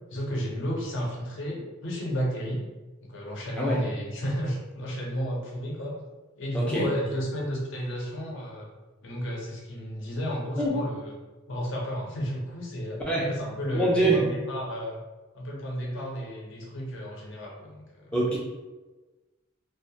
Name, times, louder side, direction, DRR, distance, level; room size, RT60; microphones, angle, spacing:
voice 1, 0.1-2.6 3.0-6.0 6.4-8.7 9.0-11.1 11.5-13.0 13.3-15.0 15.3-18.1, equal, 65° left, -2 dB, 0.6 m, -32 dB
voice 2, 6.5-6.9 10.6-10.8 13.1-13.4 13.7-14.3 18.1-18.4, right 2 dB, 5° left, -5 dB, 0.3 m, -24 dB
2.2 x 2.0 x 2.7 m, 1.2 s
head